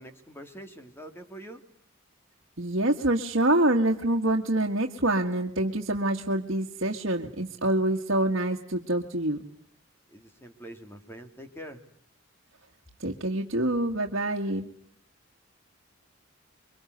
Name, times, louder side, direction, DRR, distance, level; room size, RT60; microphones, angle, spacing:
voice 1, 0.0-1.6 10.1-11.8, right 1 dB, 10° left, 6 dB, 2.6 m, -44 dB
voice 2, 2.6-9.4 13.0-14.7, right 1 dB, 65° right, 0 dB, 1.8 m, -26 dB
27.5 x 23.0 x 8.0 m, 0.62 s
head